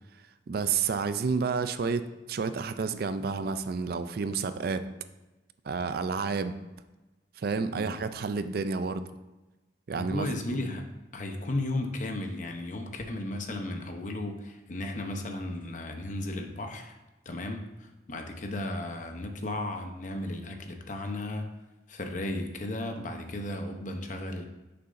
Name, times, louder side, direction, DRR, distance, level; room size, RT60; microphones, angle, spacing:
voice 1, 0.5-4.8 5.7-6.6 7.4-9.0 9.9-10.3 10.5-10.6, right 5 dB, 50° right, 11 dB, 0.4 m, -30 dB
voice 2, 10.0-10.9 11.1-17.0 17.3-21.5 21.9-24.5, left 1 dB, 40° left, 5 dB, 0.8 m, -35 dB
9.3 x 6.7 x 2.6 m, 1.1 s
head